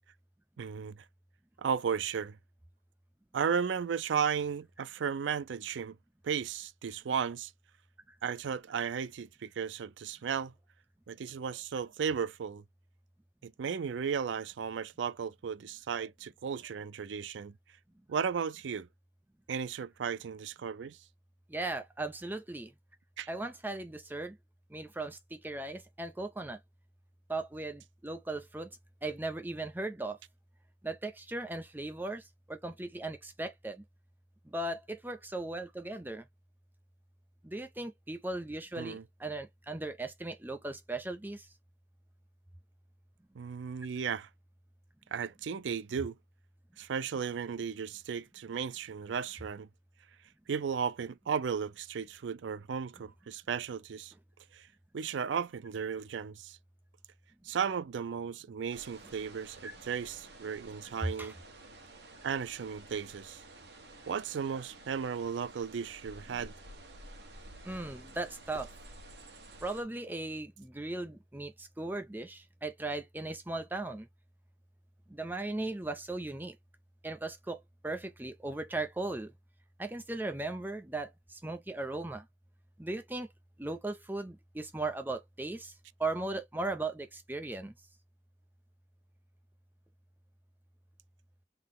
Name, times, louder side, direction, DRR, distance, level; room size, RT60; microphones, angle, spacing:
voice 1, 0.6-1.0 1.6-2.4 3.3-6.0 6.2-7.5 8.2-10.5 11.1-12.6 13.4-17.5 18.1-18.9 19.5-21.0 23.2-23.3 38.7-39.0 43.4-44.3 45.1-46.2 46.8-49.7 50.5-54.1 54.5-54.7 54.9-56.6 57.4-61.3 62.2-63.4 64.1-66.5, right 6 dB, 90° right, 0.4 m, -35 dB
voice 2, 21.5-22.7 23.3-24.4 24.7-26.6 27.3-28.7 29.0-30.2 30.8-33.8 34.5-36.2 37.4-41.5 59.6-59.7 61.2-61.3 67.6-68.7 69.6-74.1 75.1-76.6 77.0-79.3 79.8-82.2 82.8-83.3 83.6-85.7 86.0-87.7, right 2 dB, 10° right, 0.6 m, -37 dB
sound 1, 58.7-69.8, right 2 dB, 65° right, 1.4 m, -52 dB
3.8 x 3.0 x 3.8 m
head